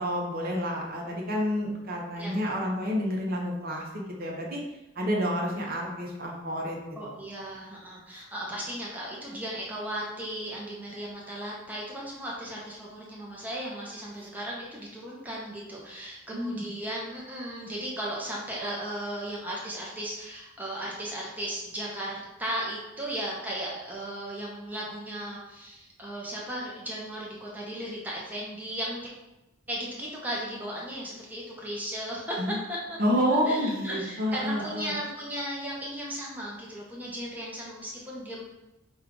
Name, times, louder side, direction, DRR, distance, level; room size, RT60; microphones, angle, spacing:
voice 1, 0.0-4.6 5.0-6.8 7.0-7.1 16.3-16.6 32.4-32.6 33.0-34.9, equal, 50° right, -1 dB, 0.8 m, -29 dB
voice 2, 7.0-29.1 29.7-32.4 32.7-33.0 33.5-38.4, right 1 dB, 10° right, -4 dB, 0.6 m, -36 dB
5.1 x 2.4 x 3.7 m, 0.95 s
head